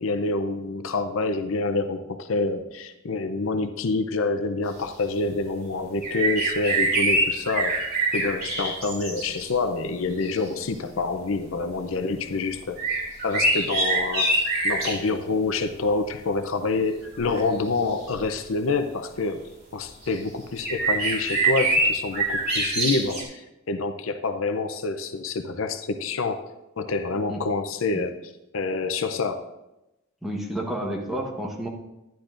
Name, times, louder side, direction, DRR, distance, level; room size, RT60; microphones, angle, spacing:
voice 1, 0.0-7.8 8.1-12.8 13.2-19.5 19.7-26.4 26.8-28.2 28.5-29.4, left 3 dB, 70° left, 8 dB, 0.6 m, -27 dB
sound 1, 6.0-9.5 10.2-10.3 12.8-15.0 17.0-17.4 18.1-18.2 20.0-20.2 20.6-23.2, right 2 dB, 45° right, 2.9 m, -24 dB
voice 2, 30.2-31.7, right 1 dB, ahead, -1 dB, 1.1 m, -30 dB
12.0 x 10.0 x 2.5 m, 0.94 s
head